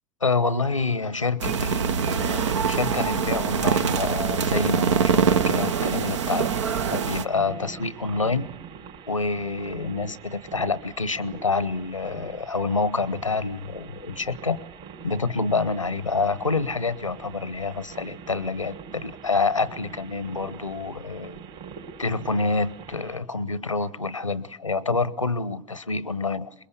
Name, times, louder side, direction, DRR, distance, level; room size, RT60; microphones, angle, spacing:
voice 1, 0.2-8.5 9.1-14.6 15.0-21.4 22.0-26.5, left 4 dB, 90° left, 1.0 m, -27 dB
sound 1, 1.4-7.3, right 7 dB, 70° right, 0.9 m, -24 dB
sound 2, 5.4-23.2, right 6 dB, 55° right, 4.6 m, -43 dB
26.5 x 22.0 x 8.3 m
figure-of-eight pair, 70°, 16 cm